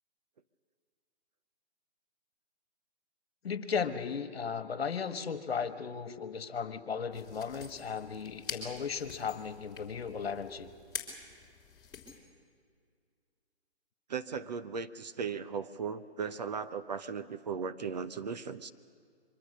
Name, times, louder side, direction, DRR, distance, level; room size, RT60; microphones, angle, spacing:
voice 1, 3.4-10.7, left 6 dB, 60° left, 10 dB, 1.6 m, -36 dB
sound 1, 7.1-12.2, left 6 dB, 10° left, 3.3 m, -46 dB
voice 2, 14.1-18.7, right 6 dB, 40° right, 10 dB, 0.7 m, -37 dB
24.0 x 23.5 x 6.7 m, 2.1 s
figure-of-eight pair, 150°, 34 cm